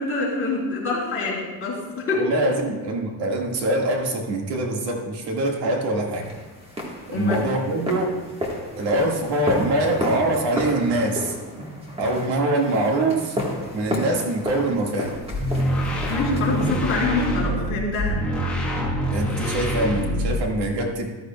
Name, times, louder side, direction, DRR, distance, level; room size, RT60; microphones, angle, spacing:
voice 1, 0.0-2.3 7.1-7.4 16.0-18.2, left 3 dB, 30° left, -6 dB, 3.6 m, -25 dB
voice 2, 2.1-6.2 7.1-8.2 8.8-11.3 12.0-13.4 13.7-15.1 19.1-21.1, right 1 dB, 80° right, 1 dB, 1.9 m, -24 dB
sound 1, 6.2-17.3, equal, 15° right, 1.4 m, -32 dB
sound 2, 15.3-20.6, equal, 5° left, 1.2 m, -25 dB
14.0 x 13.0 x 2.3 m, 1.2 s
cardioid pair, 180°, 41 cm